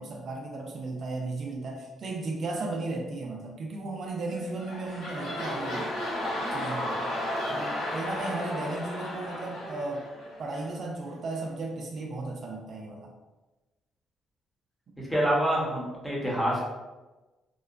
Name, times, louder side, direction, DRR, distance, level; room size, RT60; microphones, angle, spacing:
voice 1, 0.0-5.9 6.5-7.0 7.5-10.0 10.4-13.1, right 2 dB, 55° right, 0 dB, 0.4 m, -35 dB
sound 1, 4.3-10.8 11.3-11.4, left 1 dB, 90° left, 0.8 m, -34 dB
voice 2, 15.0-16.6, equal, 10° left, -5 dB, 0.9 m, -27 dB
2.9 x 2.1 x 2.4 m, 1.1 s
cardioid pair, 90°, 0 cm